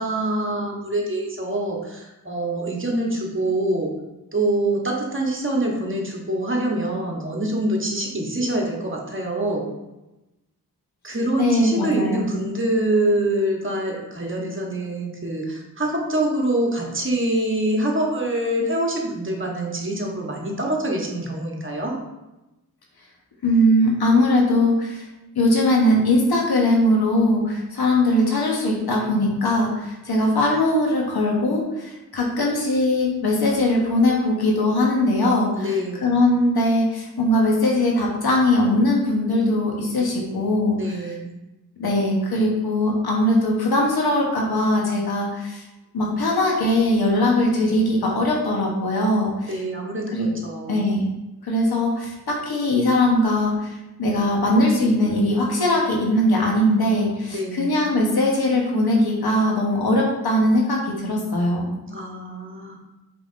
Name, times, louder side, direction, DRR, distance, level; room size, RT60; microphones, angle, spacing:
voice 1, 0.0-4.0 4.3-9.7 11.0-22.0 35.5-36.1 40.8-41.3 49.5-50.8 57.3-57.8 61.9-62.8, right 1 dB, 30° right, -1 dB, 1.2 m, -25 dB
voice 2, 11.4-12.3 23.4-25.0 25.3-41.1 41.8-45.6 45.9-49.6 50.1-50.3 50.7-51.0 51.4-61.6, left 1 dB, 75° left, -1 dB, 1.1 m, -20 dB
5.0 x 3.6 x 2.6 m, 1.0 s
cardioid pair, 40°, 38 cm